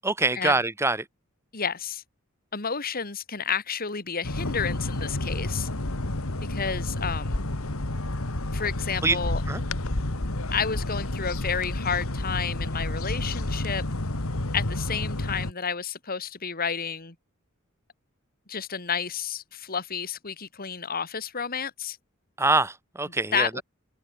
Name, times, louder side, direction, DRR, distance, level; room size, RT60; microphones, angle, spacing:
voice 1, 0.0-1.1 9.0-9.2 9.5-9.6 22.4-23.6, right 2 dB, 15° right, 1.1 m, -24 dB
voice 2, 1.5-2.0 2.5-5.7 6.5-7.4 8.5-9.4 10.5-13.8 14.5-17.2 18.5-22.0 23.3-23.6, left 6 dB, 45° left, 2.3 m, -31 dB
sound 1, 4.2-15.5, left 1 dB, 85° left, 2.1 m, -30 dB
open air
head